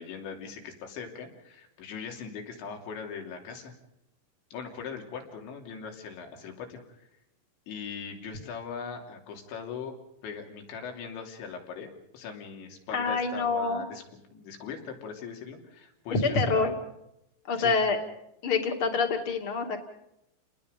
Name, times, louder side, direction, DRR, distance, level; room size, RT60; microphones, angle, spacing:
voice 1, 0.0-3.8 4.5-7.1 7.7-9.9 10.2-16.8 17.6-17.8, left 6 dB, 85° left, 3 dB, 5.4 m, -40 dB
voice 2, 12.9-13.8 16.3-16.7 17.5-18.0 18.4-19.8, left 4 dB, 35° left, 5 dB, 2.5 m, -26 dB
29.5 x 20.5 x 5.3 m, 0.81 s
omnidirectional pair, 5.1 m